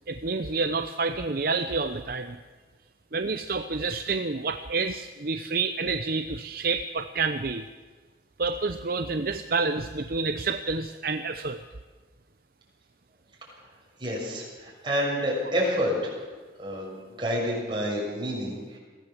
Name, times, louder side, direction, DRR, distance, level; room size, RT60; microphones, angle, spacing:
voice 1, 0.1-2.4 3.1-7.6 8.4-11.6, right 4 dB, 55° right, 8 dB, 0.7 m, -28 dB
voice 2, 14.0-16.1 16.6-18.8, equal, 25° right, -3 dB, 6.6 m, -29 dB
22.5 x 16.5 x 7.3 m, 1.4 s
head